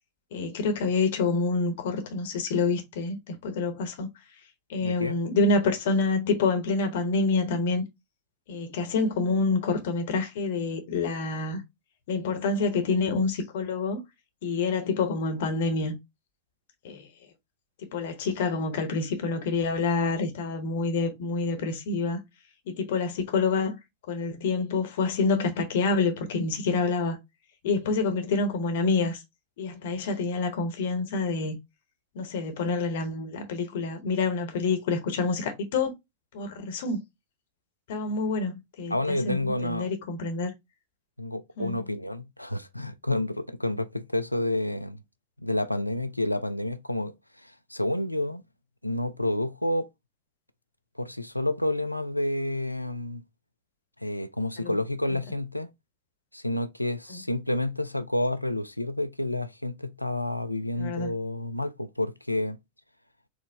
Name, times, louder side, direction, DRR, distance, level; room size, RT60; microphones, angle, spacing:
voice 1, 0.3-4.1 4.7-7.8 8.5-11.6 12.1-14.0 14.4-16.0 16.8-17.1 17.9-22.2 22.7-23.8 24.1-27.2 27.6-29.2 29.6-31.6 32.1-35.9 36.3-37.0 37.9-40.5 41.6-41.7 54.6-54.8 55.1-55.2 57.1-57.2 60.8-61.2, left 3 dB, 55° left, 1.0 m, -27 dB
voice 2, 4.8-5.2 38.9-39.9 41.2-45.0 45.4-47.1 47.4-48.4 48.8-49.9 51.0-53.2 54.0-55.7 56.3-62.6, left 1 dB, 90° left, 0.3 m, -29 dB
4.4 x 2.0 x 3.4 m
figure-of-eight pair, 90°, 0 cm